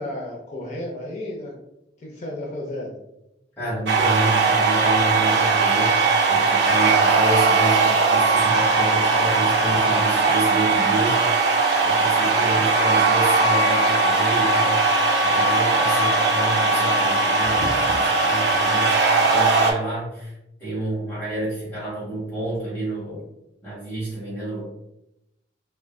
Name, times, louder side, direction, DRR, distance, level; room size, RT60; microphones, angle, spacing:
voice 1, 0.0-1.5 2.0-3.0, left 1 dB, 40° left, -2 dB, 0.5 m, -32 dB
voice 2, 3.6-5.9 6.2-11.2 11.5-20.3 20.6-23.2 23.6-24.6, right 1 dB, 10° left, -9 dB, 1.3 m, -29 dB
sound 1, 3.9-19.7, right 3 dB, 70° right, 0.5 m, -19 dB
3.5 x 2.2 x 2.2 m, 0.85 s
head